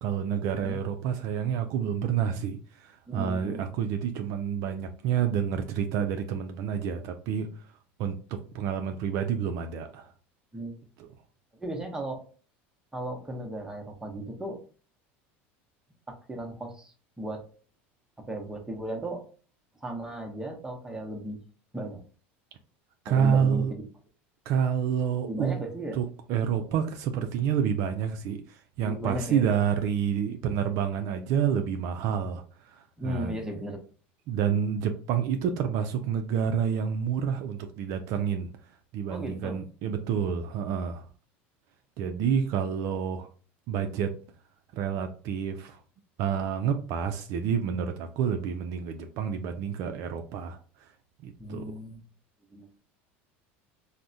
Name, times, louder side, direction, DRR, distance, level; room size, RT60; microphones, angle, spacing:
voice 1, 0.0-7.5 8.0-10.1 11.0-11.1 23.1-23.7 24.5-25.6 25.9-33.4 34.3-38.5 38.9-41.1 42.0-43.3 43.7-44.1 44.7-45.8 46.2-50.9 51.2-51.7, right 7 dB, 60° right, 6 dB, 0.4 m, -29 dB
voice 2, 3.1-3.7 10.5-10.8 11.5-12.2 12.9-14.6 16.1-17.5 18.2-19.3 19.8-21.4 21.7-22.0 23.1-23.8 25.3-26.0 28.8-29.6 33.0-33.8 39.1-39.6 51.4-52.0 52.5-52.7, right 1 dB, 10° right, 2 dB, 0.8 m, -36 dB
3.4 x 2.1 x 2.6 m, 0.39 s
supercardioid pair, 100°, 6 cm